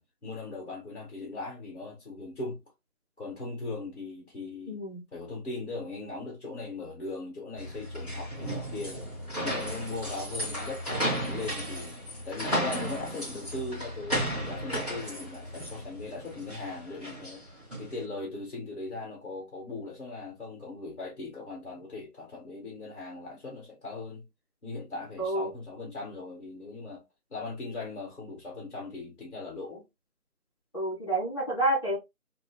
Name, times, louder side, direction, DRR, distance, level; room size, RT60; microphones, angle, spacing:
voice 1, 0.0-2.6 3.2-4.8 5.1-9.0 9.4-12.0 12.2-17.4 17.8-24.2 24.6-27.0 27.3-29.8, left 3 dB, 50° left, 1.5 m, -39 dB
voice 2, 4.7-5.0 25.2-25.5 30.7-32.0, right 1 dB, 20° left, 1.9 m, -29 dB
sound 1, 7.6-18.0, equal, ahead, 1.1 m, -34 dB
3.5 x 2.1 x 2.2 m
figure-of-eight pair, 175°, 43 cm